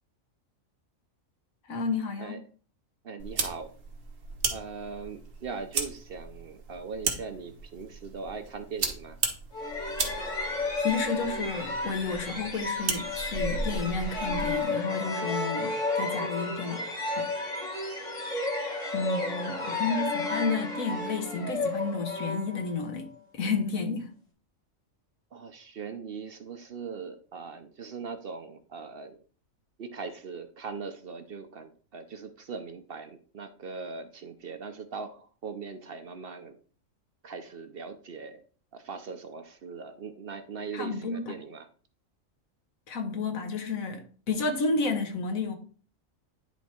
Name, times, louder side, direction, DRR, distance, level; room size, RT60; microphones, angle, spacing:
voice 1, 1.7-2.3 10.8-17.3 18.9-23.1 23.4-24.1 40.7-41.3 42.9-44.0 44.3-45.5, left 4 dB, 90° left, 1.6 m, -31 dB
voice 2, 3.0-3.7 4.5-9.2 19.0-19.8 25.3-29.2 29.8-36.6 37.2-38.4 38.7-41.7, right 5 dB, 55° right, 0.8 m, -40 dB
sound 1, 3.2-14.6, right 4 dB, 70° right, 1.5 m, -36 dB
sound 2, 9.5-23.0, left 3 dB, 70° left, 2.1 m, -32 dB
10.0 x 3.4 x 4.3 m
omnidirectional pair, 1.4 m